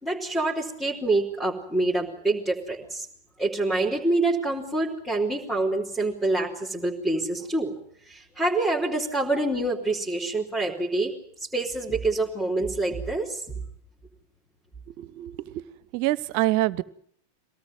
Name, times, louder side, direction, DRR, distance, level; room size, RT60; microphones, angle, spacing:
voice 1, 0.0-3.1 3.4-7.7 8.1-11.1 11.4-13.4, right 2 dB, 5° left, -3 dB, 4.0 m, -26 dB
voice 2, 15.0-15.6 15.9-16.8, right 17 dB, 45° right, 21 dB, 0.9 m, -26 dB
24.0 x 18.0 x 9.1 m, 0.66 s
figure-of-eight pair, 90°, 0 cm